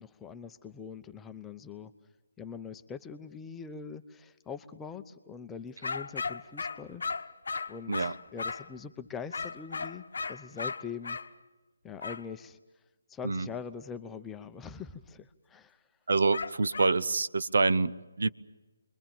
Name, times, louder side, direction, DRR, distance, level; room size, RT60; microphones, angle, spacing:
voice 1, 0.0-1.9 2.4-7.0 7.7-11.2 11.8-12.6 13.1-15.8, left 6 dB, 10° left, 8 dB, 0.8 m, -43 dB
sound 1, 5.8-8.7 9.3-11.3 12.0-12.2 16.3-17.0, left 4 dB, 60° left, 1.0 m, -36 dB
voice 2, 16.1-18.3, right 3 dB, 60° right, 14 dB, 0.8 m, -26 dB
29.5 x 22.5 x 7.3 m, 1.1 s
figure-of-eight pair, 150°, 0 cm